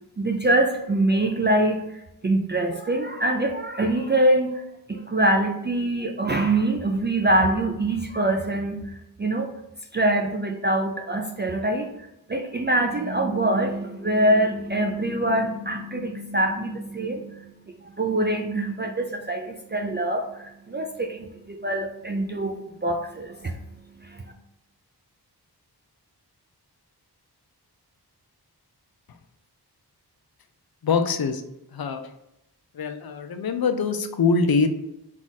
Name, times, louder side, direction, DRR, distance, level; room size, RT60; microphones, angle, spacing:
voice 1, 0.2-4.6 4.9-9.5 9.9-11.9 12.3-24.3, right 1 dB, 30° right, 2 dB, 0.3 m, -24 dB
voice 2, 30.8-31.4 31.7-32.0 32.7-34.7, left 4 dB, 65° left, 7 dB, 0.5 m, -23 dB
3.7 x 2.4 x 4.0 m, 0.84 s
wide cardioid pair, 90°, 40 cm